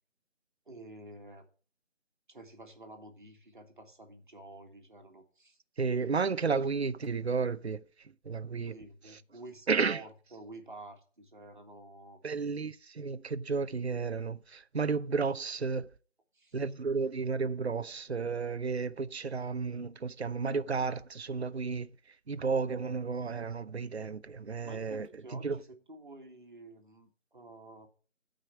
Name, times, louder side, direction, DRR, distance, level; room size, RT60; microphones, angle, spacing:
voice 1, 0.7-1.5 2.3-5.6 8.7-12.2 16.3-16.6 24.6-27.9, right 2 dB, 40° right, 1.8 m, -50 dB
voice 2, 5.8-7.8 8.3-8.8 9.0-9.2 9.7-10.0 12.2-15.9 16.5-21.9 22.3-25.6, right 5 dB, 60° right, 0.6 m, -32 dB
11.5 x 5.1 x 5.7 m
figure-of-eight pair, 170°, 38 cm